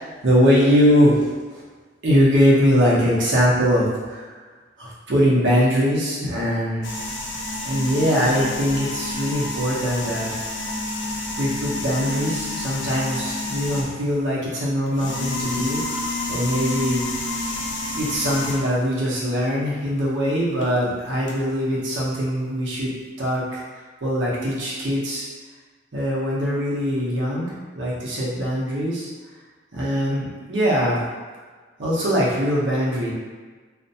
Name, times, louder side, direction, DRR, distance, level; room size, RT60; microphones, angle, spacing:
voice 1, 0.0-1.6 2.0-4.3 4.8-6.9 7.6-10.4 11.4-17.0 17.9-22.9 23.2-23.6 24.0-25.3 25.9-29.1 29.7-31.0 31.8-33.1, equal, 80° right, -6 dB, 0.7 m, -22 dB
sound 1, 6.8-14.1 14.9-18.8 20.6-20.8 21.3-21.4, left 2 dB, 70° left, 0.4 m, -29 dB
2.5 x 2.1 x 2.6 m, 1.4 s
head